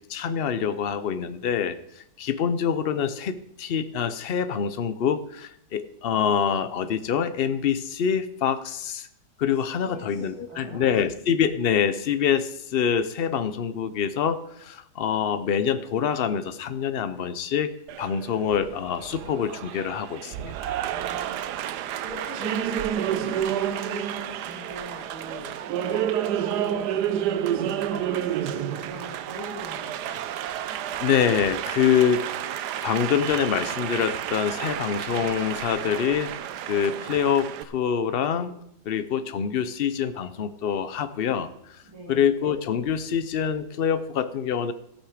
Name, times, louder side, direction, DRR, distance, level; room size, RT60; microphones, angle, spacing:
voice 1, 0.1-9.1 9.4-17.7 18.0-20.8 31.0-32.3 32.8-36.3 36.7-38.5 38.9-41.5 42.1-44.7, left 8 dB, 60° left, 12 dB, 0.6 m, -25 dB
voice 2, 9.8-10.9 20.9-21.6 22.0-30.2 41.9-42.3, right 1 dB, 60° right, -6 dB, 4.3 m, -41 dB
Applause, 17.9-37.6, right 10 dB, 75° right, 1.2 m, -30 dB
14.5 x 8.6 x 4.9 m, 0.75 s
omnidirectional pair, 1.8 m